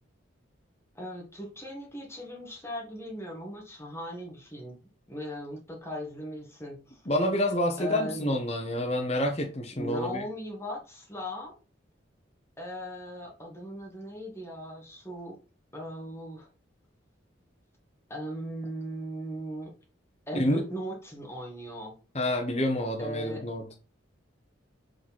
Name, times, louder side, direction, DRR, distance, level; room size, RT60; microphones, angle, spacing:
voice 1, 0.9-4.8 5.1-7.0 7.8-8.3 9.7-11.5 12.6-15.4 15.7-16.5 18.1-19.7 20.3-21.9 23.0-23.4, equal, 15° left, -1 dB, 1.7 m, -38 dB
voice 2, 7.1-10.2 20.3-20.6 22.1-23.7, left 1 dB, 35° left, 1 dB, 1.1 m, -28 dB
6.2 x 5.0 x 4.3 m, 0.33 s
head